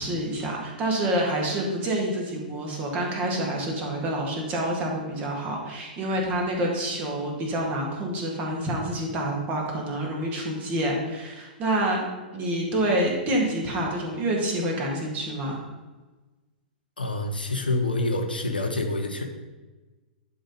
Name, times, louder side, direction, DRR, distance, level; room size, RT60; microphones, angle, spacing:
voice 1, 0.0-12.0 12.3-15.6, right 1 dB, 25° right, 0 dB, 1.9 m, -27 dB
voice 2, 17.0-19.2, left 2 dB, 80° left, 3 dB, 1.1 m, -27 dB
11.0 x 3.9 x 5.5 m, 1.2 s
figure-of-eight pair, 105°, 5 cm